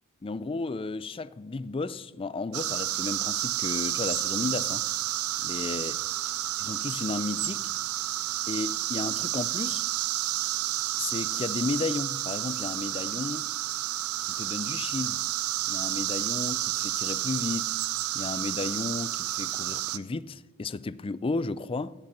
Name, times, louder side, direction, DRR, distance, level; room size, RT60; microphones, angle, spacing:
voice 1, 0.2-4.9 5.4-6.0 6.6-7.7 8.5-9.9 11.0-13.5 14.2-15.2 15.7-17.8 18.1-21.9, left 3 dB, 25° left, 0.4 m, -33 dB
sound 1, 2.5-20.0, right 14 dB, 80° right, 0.5 m, -30 dB
16.5 x 8.7 x 5.8 m
head